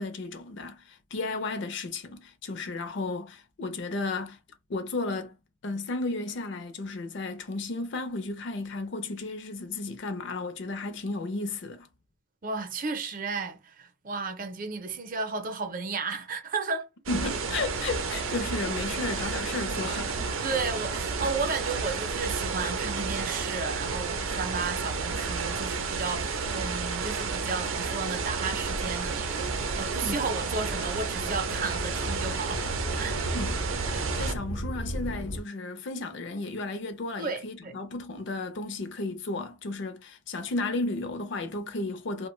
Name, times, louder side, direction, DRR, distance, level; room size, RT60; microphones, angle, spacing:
voice 1, 0.0-4.4 4.7-5.4 5.6-11.9 17.1-20.3 30.0-30.2 33.3-42.3, left 3 dB, 60° left, 0.5 m, -34 dB
voice 2, 12.4-16.9 20.4-32.7 33.0-33.2 37.2-37.8, right 4 dB, 45° right, 0.5 m, -33 dB
sound 1, 17.1-34.3, right 4 dB, 90° right, 0.5 m, -31 dB
sound 2, 28.6-35.4, equal, 90° left, 0.8 m, -37 dB
2.4 x 2.1 x 3.1 m
head